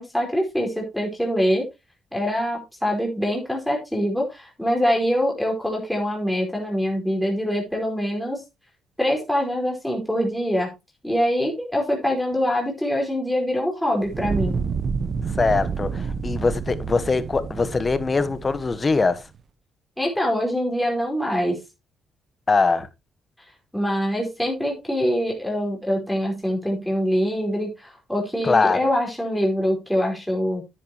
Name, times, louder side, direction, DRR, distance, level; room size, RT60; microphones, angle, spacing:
voice 1, 0.0-1.6 2.1-8.4 9.0-10.7 11.0-14.6 20.0-21.6 23.7-30.6, equal, 5° left, 4.7 m, -24 dB
Fire, 14.0-19.2, right 5 dB, 50° right, 1.3 m, -29 dB
voice 2, 15.4-19.2 22.5-22.9 28.4-28.8, left 4 dB, 30° left, 1.4 m, -22 dB
10.5 x 9.7 x 3.1 m
cardioid pair, 90°, 0 cm